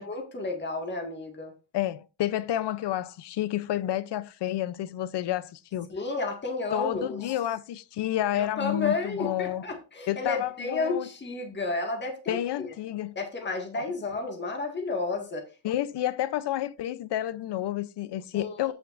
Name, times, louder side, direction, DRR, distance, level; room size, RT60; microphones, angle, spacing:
voice 1, 0.0-1.5 5.9-7.3 8.3-12.7 13.2-15.4 18.3-18.7, left 3 dB, 25° left, 1.9 m, -32 dB
voice 2, 1.7-5.9 6.7-9.6 10.1-11.1 12.3-13.1 13.7-13.8 15.6-18.7, left 13 dB, 65° left, 0.7 m, -30 dB
15.0 x 5.9 x 2.6 m
cardioid pair, 150°, 46 cm